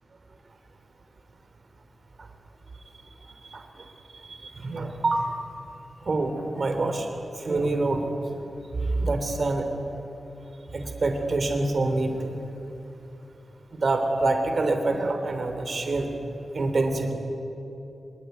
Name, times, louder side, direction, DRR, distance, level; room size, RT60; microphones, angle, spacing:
voice 1, 4.2-5.3 6.1-7.1 7.4-8.1 9.0-9.7 10.7-12.4 13.7-16.1 16.5-17.1, right 2 dB, 45° right, 5 dB, 3.5 m, -26 dB
24.0 x 22.0 x 9.5 m, 2.9 s
wide cardioid pair, 150°, 0 cm